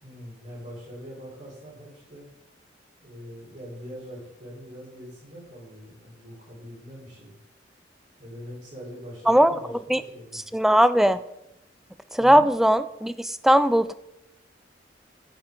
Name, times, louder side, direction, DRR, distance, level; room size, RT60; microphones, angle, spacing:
voice 1, 0.0-2.3 3.0-7.3 8.2-10.5 12.2-12.7, equal, 40° right, -5 dB, 3.7 m, -42 dB
voice 2, 10.5-11.2 12.1-13.9, equal, ahead, 13 dB, 0.3 m, -19 dB
8.1 x 8.1 x 5.1 m, 0.86 s
head